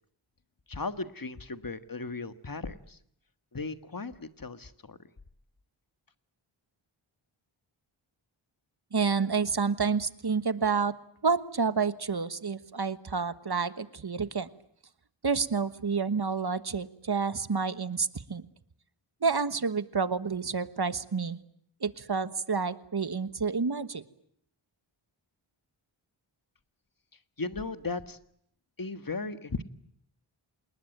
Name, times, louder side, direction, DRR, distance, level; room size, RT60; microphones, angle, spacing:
voice 1, 0.7-3.0 3.5-5.0 27.4-28.2 28.8-29.6, left 3 dB, 40° left, 11 dB, 1.6 m, -36 dB
voice 2, 8.9-10.9 11.2-14.5 15.2-18.4 19.2-21.4 21.8-24.0, right 5 dB, 50° right, 13 dB, 1.4 m, -29 dB
27.5 x 20.0 x 9.1 m, 0.70 s
wide cardioid pair, 45°, 50 cm